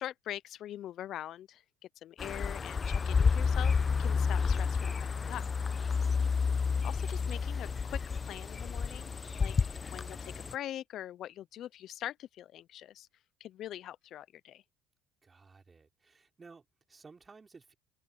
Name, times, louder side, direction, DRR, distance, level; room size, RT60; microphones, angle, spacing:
voice 1, 0.0-1.6 2.0-5.4 6.8-9.5 9.9-13.1 13.4-14.6, left 12 dB, 60° left, 0.5 m, -43 dB
sound 1, 2.2-10.5, left 5 dB, 30° left, 0.8 m, -30 dB
voice 2, 5.8-6.3 15.2-17.7, right 4 dB, 25° right, 4.1 m, -56 dB
hypercardioid pair, 75°, 0 cm